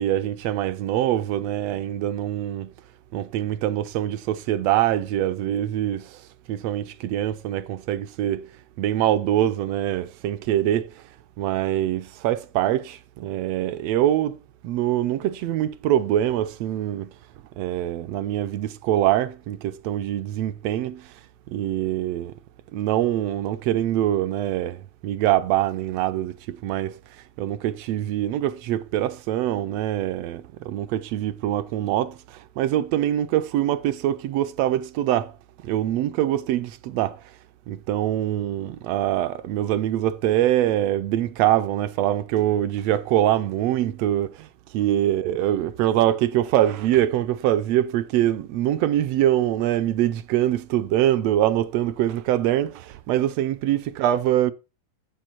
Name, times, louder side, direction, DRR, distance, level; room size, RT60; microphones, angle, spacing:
voice 1, 0.0-2.7 3.1-6.2 6.5-8.5 8.8-11.0 11.4-14.4 14.6-17.1 17.6-21.2 21.5-22.3 22.7-35.3 35.6-37.3 37.7-54.5, right 12 dB, 80° right, 1.5 m, -24 dB
9.2 x 8.0 x 4.4 m
omnidirectional pair, 3.4 m